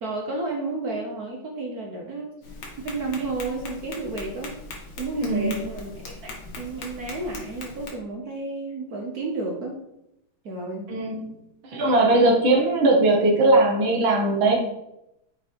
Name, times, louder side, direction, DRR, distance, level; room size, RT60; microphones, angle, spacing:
voice 1, 0.0-2.3 2.8-4.5 5.0-5.9 6.2-9.8 10.4-10.9 12.0-12.2, right 2 dB, 55° right, 1 dB, 1.3 m, -31 dB
Tap, 2.4-7.9, left 2 dB, 80° left, 2.3 m, -40 dB
voice 2, 5.2-5.6 10.9-11.3 11.7-14.6, right 2 dB, 70° right, 1 dB, 2.1 m, -19 dB
6.8 x 4.7 x 4.5 m, 0.85 s
omnidirectional pair, 2.2 m